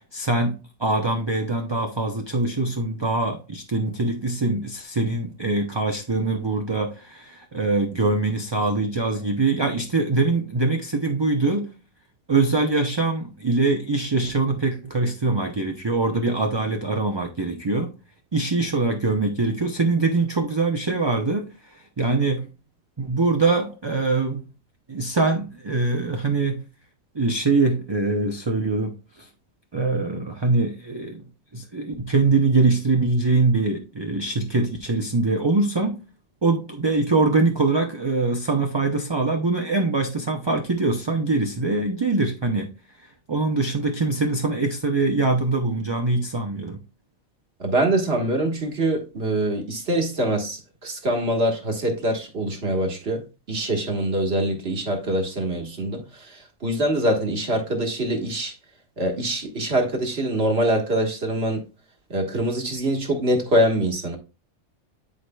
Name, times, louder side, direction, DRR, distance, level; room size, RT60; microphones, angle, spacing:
voice 1, 0.0-11.7 12.3-17.9 18.3-22.5 23.0-24.5 24.9-26.7 27.1-29.3 29.7-31.2 31.5-36.0 36.4-42.7 43.0-46.8, right 3 dB, 30° right, 0.5 m, -23 dB
voice 2, 47.6-53.2 53.5-56.0 56.6-58.5 59.0-61.6 62.1-64.2, right 1 dB, 50° right, 1.6 m, -24 dB
10.5 x 4.8 x 2.3 m
omnidirectional pair, 1.4 m